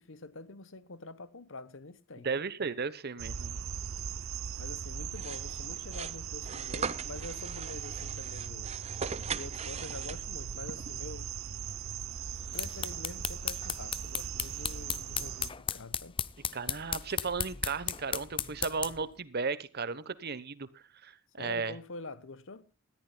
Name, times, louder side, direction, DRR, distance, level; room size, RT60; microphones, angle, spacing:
voice 1, 0.0-2.3 4.6-8.8 9.3-11.3 12.5-16.2 21.4-22.7, left 3 dB, 70° left, 1.1 m, -46 dB
voice 2, 2.2-3.5 16.5-21.7, right 4 dB, 50° right, 1.1 m, -35 dB
sound 1, 3.2-15.5, right 8 dB, 80° right, 0.6 m, -39 dB
sound 2, 5.1-10.5, right 5 dB, 30° right, 0.6 m, -40 dB
sound 3, 12.3-19.1, left 8 dB, 25° left, 0.6 m, -36 dB
20.0 x 14.0 x 2.3 m
head